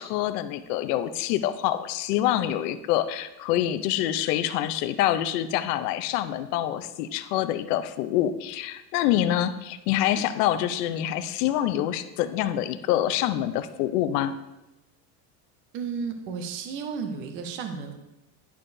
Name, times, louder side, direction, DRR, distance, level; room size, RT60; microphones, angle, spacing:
voice 1, 0.0-14.3, left 12 dB, 75° left, 11 dB, 0.7 m, -26 dB
voice 2, 15.7-17.9, right 5 dB, 25° right, 6 dB, 0.4 m, -33 dB
10.5 x 6.5 x 2.6 m, 0.94 s
cardioid pair, 175°, 47 cm